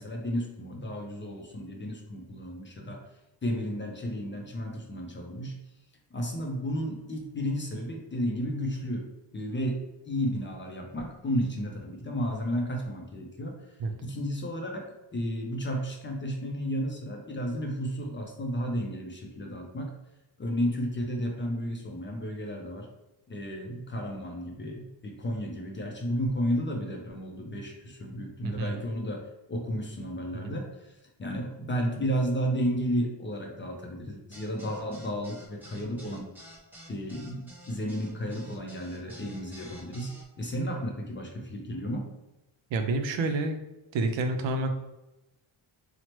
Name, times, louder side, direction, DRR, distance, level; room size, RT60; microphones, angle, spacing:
voice 1, 0.0-3.0 3.4-5.6 6.1-9.1 9.3-13.7 14.0-19.9 20.4-22.9 23.3-36.3 36.9-42.1, equal, 25° left, 1 dB, 0.4 m, -33 dB
sound 1, 34.3-40.2, right 1 dB, 5° right, 0.7 m, -50 dB
voice 2, 42.7-43.6 43.9-44.7, right 2 dB, 70° right, 6 dB, 0.5 m, -28 dB
2.9 x 2.0 x 2.9 m, 0.95 s
cardioid pair, 105°, 47 cm